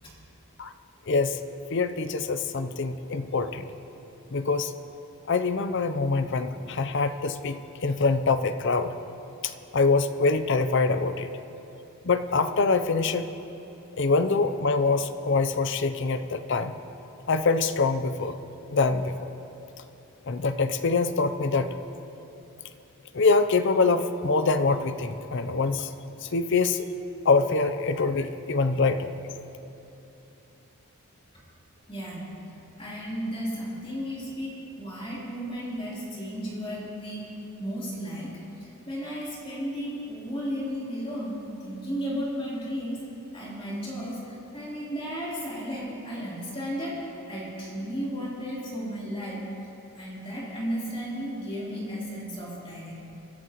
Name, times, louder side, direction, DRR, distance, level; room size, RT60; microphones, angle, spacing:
voice 1, 1.1-1.4 1.7-3.7 4.3-4.7 5.3-8.9 9.4-11.3 12.0-13.3 14.0-16.7 17.3-18.4 18.7-19.3 20.3-21.7 23.1-25.9 26.2-26.9 27.2-29.2, left 4 dB, 55° left, 10 dB, 0.6 m, -24 dB
voice 2, 31.9-32.3 32.8-37.3 37.6-43.0 43.3-49.5 49.9-53.0, equal, 25° left, -7 dB, 3.5 m, -34 dB
24.5 x 11.5 x 3.0 m, 3.0 s
head